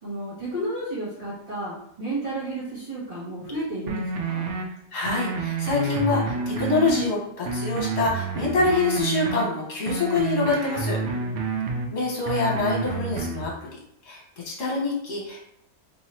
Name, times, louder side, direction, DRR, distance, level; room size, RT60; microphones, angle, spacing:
voice 1, 0.0-4.4, right 1 dB, 40° right, -8 dB, 1.7 m, -32 dB
sound 1, 3.9-4.6 5.1-7.1 7.5-9.4 9.9-11.9 12.3-13.5, right 4 dB, 70° right, 0.9 m, -29 dB
voice 2, 4.9-11.0 11.9-13.7 14.0-15.4, left 3 dB, 55° left, -3 dB, 1.3 m, -25 dB
2.9 x 2.8 x 4.3 m, 0.73 s
omnidirectional pair, 1.4 m